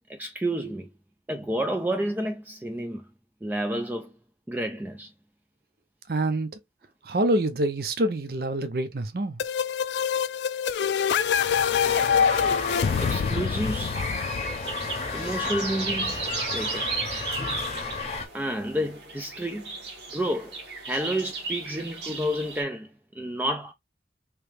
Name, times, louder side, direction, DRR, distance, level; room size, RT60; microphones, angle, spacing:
voice 1, 0.1-0.9 1.3-3.0 3.4-4.1 4.5-5.1 13.0-14.0 15.1-16.2 16.5-16.9 18.3-19.7 20.1-22.9 23.2-23.7, right 1 dB, 10° right, 0.3 m, -30 dB
voice 2, 6.1-6.5 7.1-9.4, right 1 dB, 55° right, 0.6 m, -26 dB
sound 1, 9.4-15.1, left 7 dB, 80° left, 0.3 m, -25 dB
sound 2, 11.1-18.3, left 4 dB, 35° left, 0.8 m, -32 dB
sound 3, 13.8-22.6, right 4 dB, 85° right, 1.3 m, -35 dB
3.1 x 2.8 x 3.3 m
head